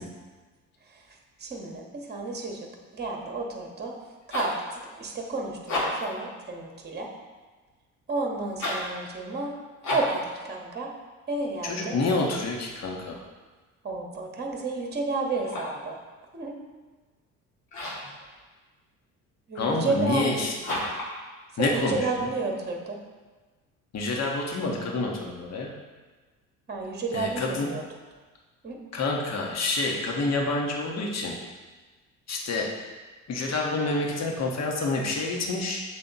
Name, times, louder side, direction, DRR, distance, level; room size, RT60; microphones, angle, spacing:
voice 1, 1.4-2.6 2.9-3.9 4.3-4.5 4.9-7.1 8.1-9.5 9.9-10.9 11.3-12.0 13.8-15.9 16.3-16.5 19.5-20.6 21.6-23.0 26.7-27.8 28.6-28.8, right 3 dB, 25° right, 1 dB, 1.2 m, -31 dB
sound 1, 4.0-4.6 5.5-6.2 8.5-8.9 9.8-10.2 15.3-15.8 17.7-18.1 20.6-21.1, left 1 dB, 60° left, 1.8 m, -31 dB
voice 2, 11.6-13.2 19.5-20.8 21.6-22.3 23.9-25.7 27.1-27.7 28.9-31.3 32.3-32.7 33.3-35.8, left 2 dB, 40° left, 0 dB, 1.2 m, -28 dB
7.4 x 3.4 x 4.1 m, 1.3 s
hypercardioid pair, 55°, 42 cm